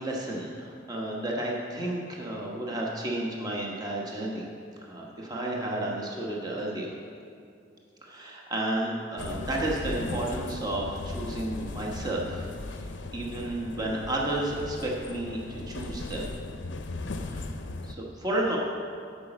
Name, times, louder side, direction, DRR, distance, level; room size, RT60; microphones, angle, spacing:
voice 1, 0.0-4.4 4.8-6.9 8.0-16.3 17.1-17.5 17.8-18.6, right 1 dB, 20° right, -2 dB, 1.1 m, -32 dB
sound 1, 9.2-17.9, left 2 dB, 85° left, 0.6 m, -37 dB
8.4 x 6.0 x 7.8 m, 2.4 s
head